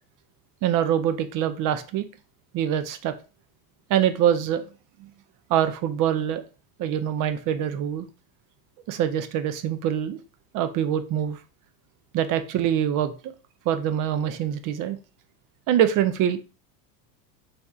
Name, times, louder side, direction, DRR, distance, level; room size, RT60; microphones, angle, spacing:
voice 1, 0.6-2.0 2.5-3.1 3.9-4.6 5.5-6.4 6.8-8.1 8.9-10.2 10.5-11.4 12.1-13.3 13.7-15.0 15.7-16.4, right 10 dB, 45° right, 11 dB, 0.6 m, -24 dB
4.2 x 3.3 x 2.4 m, 0.33 s
supercardioid pair, 110°, 47 cm